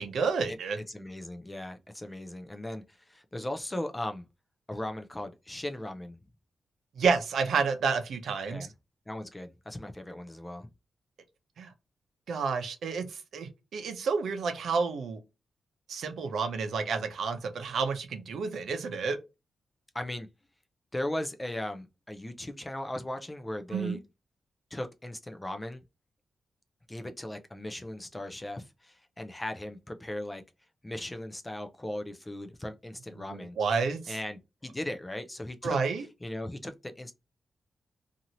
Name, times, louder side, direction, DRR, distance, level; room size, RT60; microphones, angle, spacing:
voice 1, 0.0-0.8 7.0-8.7 11.6-11.7 12.3-15.2 15.9-19.2 23.7-24.0 33.3-34.2 35.6-36.1, right 5 dB, 75° right, 0.6 m, -30 dB
voice 2, 0.9-4.2 4.7-6.2 8.5-8.7 9.1-10.7 19.9-20.3 20.9-24.0 24.7-25.8 26.9-30.4 30.8-33.6 34.1-35.8 36.2-37.1, left 1 dB, 10° left, 0.3 m, -38 dB
2.7 x 2.5 x 2.9 m
wide cardioid pair, 165°, 0 cm